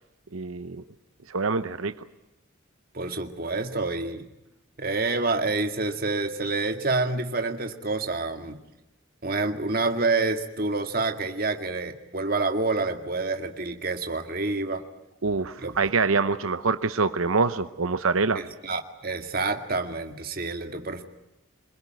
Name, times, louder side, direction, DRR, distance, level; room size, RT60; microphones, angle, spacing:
voice 1, 0.3-0.8 1.3-1.9 15.2-18.4, right 4 dB, 90° right, 11 dB, 0.9 m, -25 dB
voice 2, 2.9-4.3 4.8-8.6 9.2-14.8 15.6-15.8 18.3-21.0, right 3 dB, 45° right, 6 dB, 2.1 m, -28 dB
26.0 x 22.0 x 9.3 m, 0.91 s
head